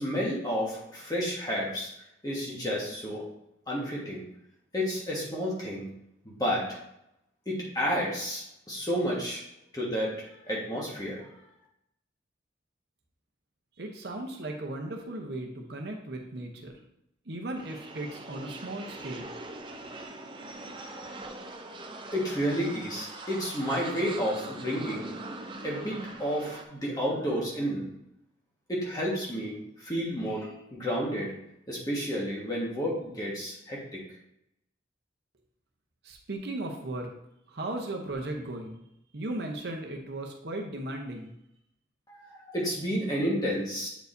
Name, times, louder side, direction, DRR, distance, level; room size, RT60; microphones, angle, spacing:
voice 1, 0.0-1.9 2.2-3.2 3.7-4.2 4.7-5.9 6.2-6.8 7.4-9.4 9.7-10.1 10.5-11.3 20.7-21.1 22.1-25.1 25.6-27.8 28.7-31.3 31.7-34.0 42.1-43.9, equal, 20° left, -4 dB, 1.4 m, -31 dB
voice 2, 13.8-16.8 17.3-19.3 36.0-37.1 37.5-38.8 39.1-41.3, right 1 dB, 60° right, 2 dB, 0.8 m, -36 dB
sound 1, 17.6-26.6, right 2 dB, 25° right, 0.5 m, -42 dB
8.0 x 4.6 x 2.6 m, 0.80 s
head